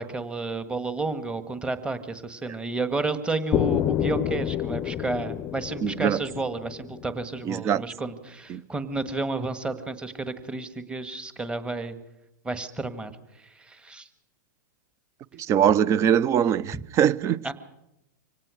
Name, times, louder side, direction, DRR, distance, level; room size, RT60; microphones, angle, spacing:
voice 1, 0.0-12.0 12.4-13.1 13.6-14.1 16.7-16.8 17.4-17.5, right 3 dB, 10° right, 1.7 m, -31 dB
sound 1, 3.5-7.4, left 12 dB, 30° left, 0.7 m, -28 dB
voice 2, 5.8-6.2 7.5-7.8 8.5-8.6 15.5-17.4, right 9 dB, 30° right, 0.7 m, -22 dB
25.0 x 18.0 x 6.4 m
hypercardioid pair, 125°, 10 cm